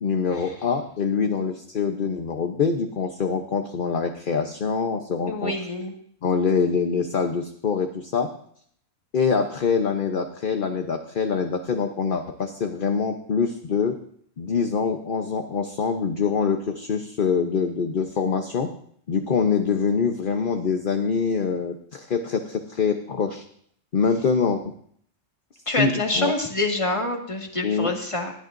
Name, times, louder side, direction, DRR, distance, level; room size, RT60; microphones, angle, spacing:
voice 1, 0.0-5.5 6.2-8.3 9.1-14.0 14.4-18.7 19.1-23.4 23.9-24.7 25.8-26.3 27.6-27.9, left 5 dB, 45° left, 5 dB, 1.0 m, -24 dB
voice 2, 5.3-5.9 25.6-28.3, left 2 dB, 25° left, 2 dB, 1.7 m, -26 dB
19.5 x 13.5 x 2.6 m, 0.65 s
omnidirectional pair, 1.4 m